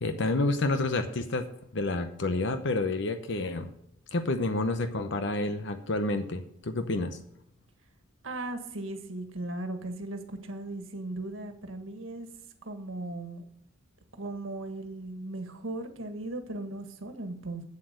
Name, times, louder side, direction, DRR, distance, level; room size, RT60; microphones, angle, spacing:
voice 1, 0.0-1.5 1.7-3.7 4.1-7.2, left 2 dB, 65° left, 8 dB, 0.8 m, -29 dB
voice 2, 8.2-12.3 12.6-13.5 14.2-17.6, right 2 dB, 90° right, 6 dB, 1.6 m, -37 dB
8.4 x 8.0 x 6.4 m, 0.76 s
head